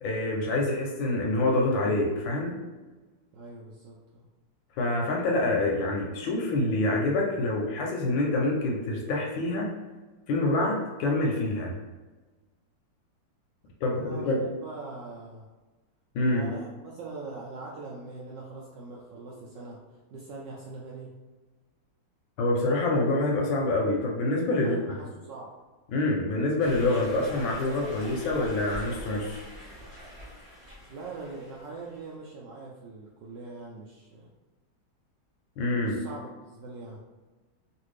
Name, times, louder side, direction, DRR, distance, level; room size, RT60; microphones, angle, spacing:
voice 1, 0.0-2.5 4.8-9.7 10.3-11.7 13.8-14.4 16.1-16.5 22.4-24.8 25.9-29.4 35.6-35.9, left 2 dB, 75° left, -1 dB, 1.2 m, -26 dB
voice 2, 3.3-4.3 13.9-15.5 16.3-19.8 20.1-21.1 24.6-25.5 30.9-34.3 35.7-37.0, right 3 dB, 80° right, -4 dB, 1.0 m, -42 dB
sound 1, 26.6-32.0, equal, 45° right, 0.4 m, -44 dB
3.3 x 2.5 x 3.1 m, 1.3 s
omnidirectional pair, 2.4 m